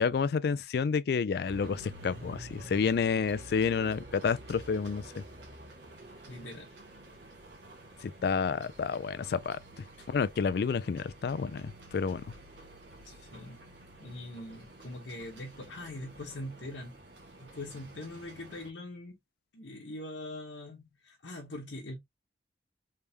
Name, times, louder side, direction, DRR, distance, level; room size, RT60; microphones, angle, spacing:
voice 1, 0.0-5.2 8.0-9.6 10.1-12.2, left 5 dB, 55° left, 0.3 m, -30 dB
sound 1, 1.4-18.7, right 1 dB, 70° right, 1.3 m, -50 dB
voice 2, 6.3-6.7 7.1-7.2 10.0-10.1 13.0-13.6 14.0-17.0 17.4-19.2 19.5-22.0, left 1 dB, 80° left, 1.0 m, -42 dB
3.5 x 3.3 x 2.8 m
head